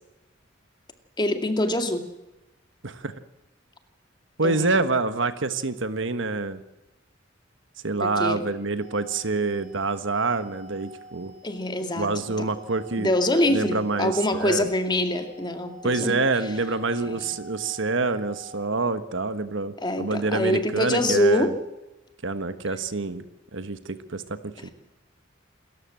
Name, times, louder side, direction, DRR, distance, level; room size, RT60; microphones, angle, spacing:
voice 1, 1.2-2.1 4.4-4.8 8.0-8.4 11.4-12.5 13.0-16.2 17.0-17.1 19.8-21.5, left 1 dB, 20° left, 6 dB, 2.3 m, -25 dB
voice 2, 4.4-6.6 7.8-11.3 12.0-13.1 13.5-14.7 15.8-21.5 22.2-23.2 23.5-24.7, right 3 dB, 65° right, 11 dB, 1.4 m, -26 dB
sound 1, 8.8-18.7, right 1 dB, 35° right, 4.3 m, -47 dB
27.5 x 14.5 x 7.7 m, 1.0 s
head